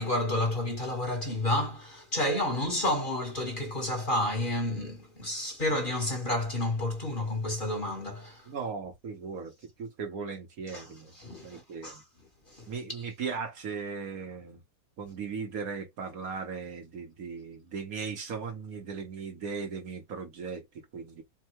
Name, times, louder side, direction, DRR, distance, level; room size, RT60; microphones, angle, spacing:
voice 1, 0.0-8.5 10.7-10.9 11.2-12.0 12.5-12.7, left 1 dB, 35° left, 1.2 m, -30 dB
voice 2, 8.5-9.5 9.8-11.1 11.4-12.0 12.7-14.6 15.0-20.6 20.9-21.2, right 5 dB, 60° right, 1.2 m, -37 dB
3.5 x 2.2 x 4.3 m
omnidirectional pair, 1.8 m